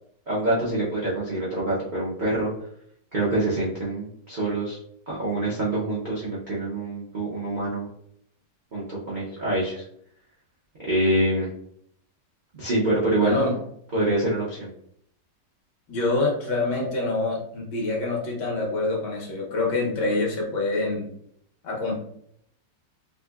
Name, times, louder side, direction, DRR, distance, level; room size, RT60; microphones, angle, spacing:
voice 1, 0.3-2.5 3.1-4.8 5.1-7.9 8.7-9.8 10.8-11.5 12.5-13.4 13.9-14.7, right 1 dB, 55° right, -8 dB, 0.5 m, -25 dB
voice 2, 13.2-13.5 15.9-21.1 21.6-22.0, left 2 dB, 75° left, -2 dB, 1.6 m, -26 dB
4.0 x 2.6 x 2.3 m, 0.69 s
omnidirectional pair, 1.9 m